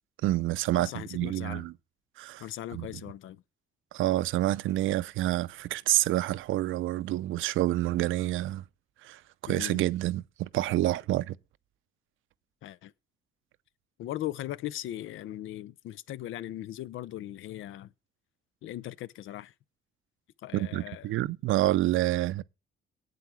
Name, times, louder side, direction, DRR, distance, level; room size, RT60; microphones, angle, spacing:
voice 1, 0.2-1.7 2.2-2.4 2.7-2.9 3.9-8.6 9.0-11.4 20.5-22.4, right 15 dB, 80° right, 0.6 m, -28 dB
voice 2, 0.7-1.6 2.4-3.4 9.5-9.8 12.6-12.9 14.0-17.9 18.6-19.5 20.4-21.1, left 13 dB, 80° left, 0.6 m, -39 dB
8.4 x 8.0 x 6.2 m
cardioid pair, 90°, 20 cm